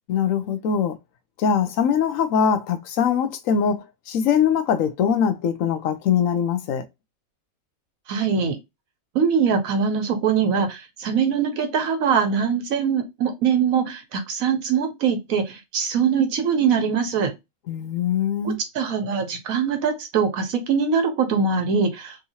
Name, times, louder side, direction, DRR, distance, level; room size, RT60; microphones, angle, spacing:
voice 1, 0.1-0.9 1.4-6.8 17.7-18.6, left 7 dB, 75° left, 1.0 m, -22 dB
voice 2, 8.1-8.6 9.1-17.3 18.4-22.2, right 6 dB, 80° right, 1.3 m, -22 dB
3.7 x 2.7 x 2.8 m
omnidirectional pair, 1.4 m